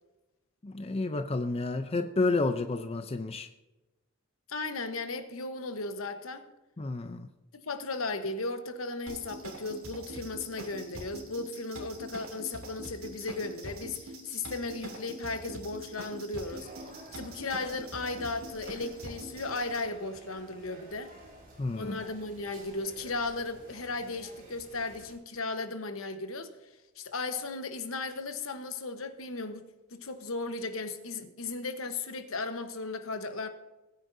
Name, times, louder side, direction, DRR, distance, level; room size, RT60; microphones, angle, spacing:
voice 1, 0.6-3.5 6.8-7.3 21.6-22.0, left 3 dB, 30° left, 0.5 m, -30 dB
voice 2, 4.5-6.5 7.7-16.7 17.1-21.1 21.7-26.5 27.0-29.6 29.9-33.5, left 3 dB, 75° left, 1.1 m, -36 dB
sound 1, 9.1-19.8, right 1 dB, 85° right, 2.8 m, -44 dB
sound 2, 16.4-25.1, right 1 dB, 45° right, 2.8 m, -52 dB
20.0 x 9.5 x 2.7 m
head